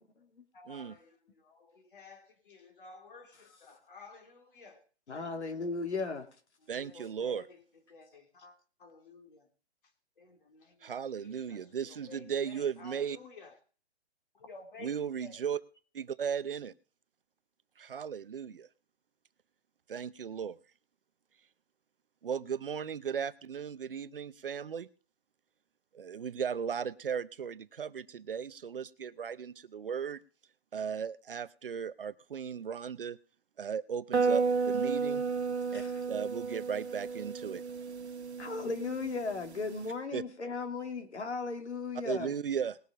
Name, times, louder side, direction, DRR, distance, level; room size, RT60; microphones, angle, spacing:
voice 1, 0.5-4.8 6.6-7.6 7.9-9.5 9.8-13.6 14.3-15.4, left 3 dB, 50° left, 5 dB, 3.2 m, -53 dB
voice 2, 5.1-6.3 35.7-35.9 38.4-42.3, left 4 dB, 80° left, 6 dB, 2.8 m, -36 dB
voice 3, 6.7-7.4 10.8-13.2 14.8-15.6 15.9-16.7 17.8-18.7 19.9-20.6 22.2-24.9 25.9-30.2 30.7-33.2 33.6-35.2 35.7-37.6 40.1-40.2 42.0-42.8, right 7 dB, 55° right, 15 dB, 0.7 m, -36 dB
sound 1, 34.1-39.9, right 5 dB, 80° right, 1.4 m, -33 dB
20.0 x 6.7 x 5.1 m, 0.40 s
hypercardioid pair, 175°, 33 cm